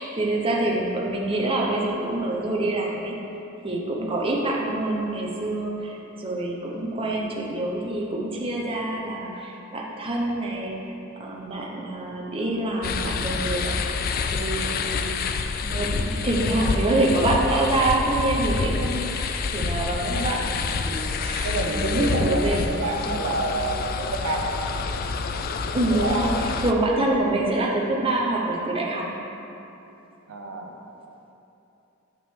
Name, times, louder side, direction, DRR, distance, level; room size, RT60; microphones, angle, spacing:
voice 1, 0.0-3.1 3.6-10.8 11.2-15.1 15.6-22.6 23.1-23.3 25.7-29.1, right 2 dB, 25° right, -2 dB, 0.8 m, -26 dB
sound 1, 12.8-26.7, left 4 dB, 45° left, 0.3 m, -28 dB
voice 2, 21.4-24.6 25.9-26.4 30.3-30.7, right 2 dB, 85° right, 2 dB, 0.7 m, -28 dB
7.7 x 5.8 x 3.6 m, 2.9 s
head